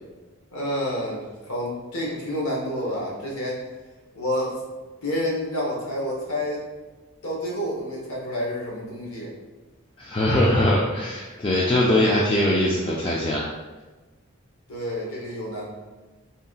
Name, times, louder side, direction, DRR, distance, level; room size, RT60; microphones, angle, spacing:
voice 1, 0.5-3.6 4.1-4.6 5.0-6.6 7.2-9.3 11.9-12.3 14.7-15.6, equal, 85° left, -4 dB, 1.2 m, -29 dB
voice 2, 10.0-13.5, left 1 dB, 25° left, -4 dB, 0.3 m, -21 dB
4.0 x 3.8 x 2.4 m, 1.2 s
head